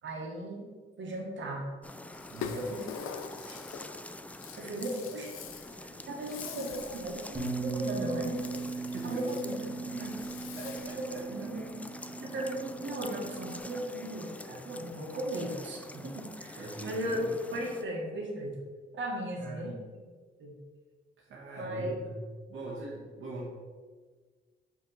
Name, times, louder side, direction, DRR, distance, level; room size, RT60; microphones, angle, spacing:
voice 1, 0.0-0.7 1.0-1.7 2.5-2.9 3.4-3.6 4.6-5.3 6.0-8.4 9.0-10.1 10.6-11.7 12.2-17.2 17.5-18.6 18.9-20.1 20.4-20.5 21.6-22.1, right 1 dB, 65° right, 0 dB, 1.5 m, -37 dB
sound 1, 1.8-17.8, left 1 dB, 5° left, 0.3 m, -46 dB
Rattle (instrument), 2.1-11.1, left 7 dB, 90° left, 0.5 m, -45 dB
voice 2, 5.8-6.7 8.7-9.4 10.6-11.5 16.6-17.4 19.4-19.8 21.2-22.2 22.5-23.5, right 2 dB, 80° right, -5 dB, 1.2 m, -43 dB
Bass guitar, 7.3-13.6, right 3 dB, 20° right, 1.8 m, -38 dB
5.7 x 3.4 x 5.5 m, 1.5 s
cardioid pair, 70°, 21 cm